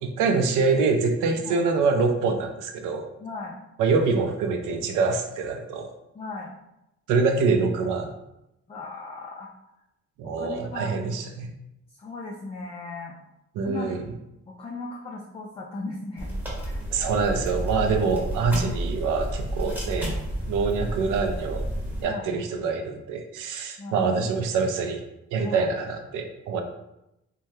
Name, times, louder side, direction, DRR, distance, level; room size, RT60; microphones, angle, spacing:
voice 1, 0.0-3.1 3.8-5.9 7.1-8.1 10.2-11.5 13.6-14.0 16.9-20.2 20.5-21.6 22.0-25.0 25.3-26.6, right 4 dB, 85° right, 5 dB, 0.5 m, -25 dB
voice 2, 3.2-3.6 6.1-6.5 8.7-9.5 10.2-11.0 12.0-13.2 13.6-14.0 14.5-16.3 16.6-16.8 19.6-19.8 22.0-22.3 23.8-24.1 25.4-25.7, left 3 dB, 20° left, -2 dB, 0.4 m, -37 dB
sound 1, 16.2-22.0, right 1 dB, 5° right, 1.0 m, -31 dB
3.2 x 2.2 x 2.7 m, 0.88 s
cardioid pair, 90°, 30 cm